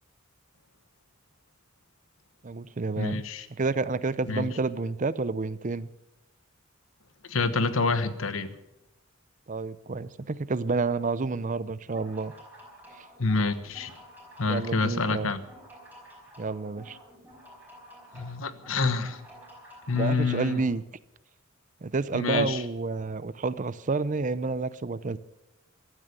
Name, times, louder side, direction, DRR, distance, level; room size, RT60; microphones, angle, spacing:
voice 1, 2.4-3.2 3.6-5.9 9.5-12.3 12.9-13.0 14.5-15.3 16.4-17.0 19.9-20.8 21.8-25.2, right 3 dB, 40° right, 17 dB, 0.6 m, -29 dB
voice 2, 3.0-3.5 4.3-4.5 7.2-8.5 13.2-13.9 14.4-15.4 18.1-19.2 19.9-20.6 22.1-22.6, left 3 dB, 75° left, 12 dB, 1.2 m, -27 dB
sound 1, 11.8-20.7, equal, 10° right, 5.1 m, -51 dB
15.5 x 12.5 x 6.9 m, 0.90 s
head